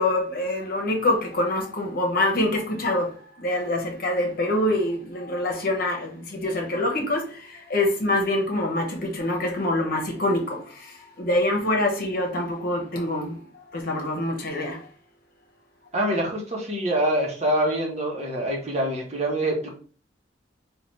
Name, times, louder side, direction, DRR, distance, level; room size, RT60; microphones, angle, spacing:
voice 1, 0.0-3.1 3.4-7.2 7.7-10.6 11.2-13.3 13.7-14.8, left 1 dB, 50° left, 1.0 m, -25 dB
voice 2, 15.9-19.8, right 1 dB, 35° right, 1.1 m, -25 dB
3.9 x 2.5 x 3.0 m
head